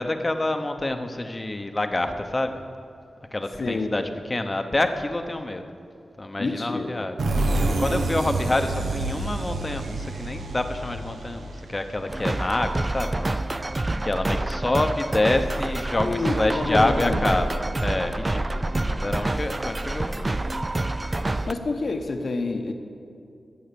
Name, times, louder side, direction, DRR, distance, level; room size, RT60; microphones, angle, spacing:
voice 1, 0.0-2.6 3.3-5.7 6.2-7.1 7.8-13.2 14.0-20.3, left 2 dB, 25° left, 7 dB, 0.8 m, -27 dB
voice 2, 3.6-4.1 6.4-7.1 16.0-17.3 21.5-22.7, left 3 dB, 55° left, 5 dB, 1.0 m, -28 dB
sound 1, 7.2-12.7, right 2 dB, 85° right, 1.1 m, -28 dB
sound 2, 12.1-21.5, right 2 dB, 25° right, 0.4 m, -27 dB
15.0 x 7.8 x 6.9 m, 2.5 s
wide cardioid pair, 100°, 0 cm